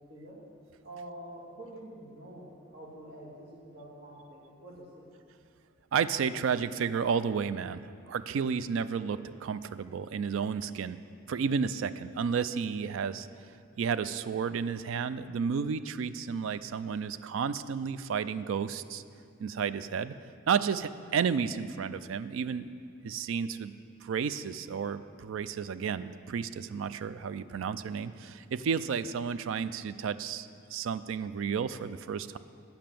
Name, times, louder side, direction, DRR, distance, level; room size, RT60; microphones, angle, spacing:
voice 1, 0.8-5.1, right 1 dB, 45° right, -5 dB, 2.2 m, -47 dB
voice 2, 5.9-11.0 11.3-13.3 13.8-19.0 19.4-20.1 20.5-22.7 23.0-23.7 24.0-32.4, right 6 dB, 65° right, 14 dB, 0.3 m, -32 dB
8.7 x 5.9 x 7.5 m, 2.3 s
head